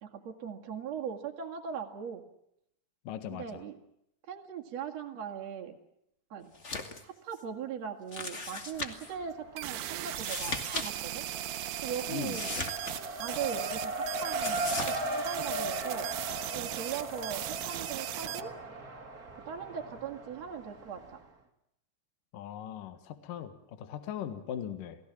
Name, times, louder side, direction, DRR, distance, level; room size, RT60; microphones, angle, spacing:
voice 1, 0.0-2.2 3.3-3.8 4.3-5.8 6.3-6.5 7.0-11.3 11.8-12.6 13.1-16.1 16.5-18.5 19.5-21.2, right 7 dB, 50° right, 1 dB, 2.8 m, -39 dB
voice 2, 3.0-3.6 12.1-12.4 22.3-25.0, left 9 dB, 65° left, 10 dB, 3.1 m, -39 dB
sound 1, 6.5-7.0 7.3-7.4 8.1-9.1 10.1-10.9 11.1-11.2 12.3-13.4 14.4-15.0, left 3 dB, 25° left, 1.6 m, -37 dB
Race car auto racing, 8.7-9.5 9.8-21.2, right 2 dB, 25° right, 2.7 m, -38 dB
sound 2, 9.6-18.4, right 12 dB, 90° right, 3.1 m, -38 dB
29.5 x 19.0 x 7.4 m, 0.78 s
omnidirectional pair, 4.3 m